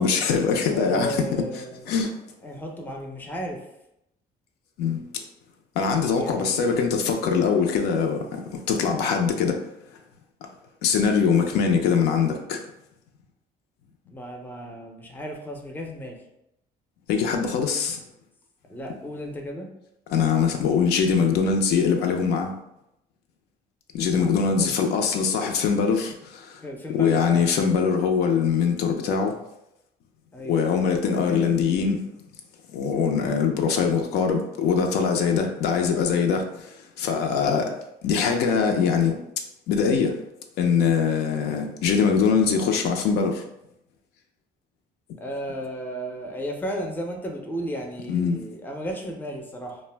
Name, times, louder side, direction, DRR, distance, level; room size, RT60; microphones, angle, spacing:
voice 1, 0.0-1.3 1.9-2.2 4.8-5.0 5.8-9.6 10.8-12.6 17.1-18.0 20.1-22.5 23.9-26.6 26.9-29.4 30.5-32.0 32.7-37.7 38.0-39.2 39.7-40.2 40.6-43.4 48.1-48.4, left 6 dB, 75° left, 3 dB, 0.4 m, -22 dB
voice 2, 0.7-2.0 2.4-3.6 6.1-7.0 11.5-11.8 14.1-16.2 18.7-19.7 24.1-24.7 26.6-27.5 30.3-30.5 31.1-31.5 37.4-37.7 45.2-49.8, equal, 10° left, 1 dB, 0.5 m, -34 dB
2.4 x 2.1 x 3.2 m, 0.83 s
cardioid pair, 110°, 17 cm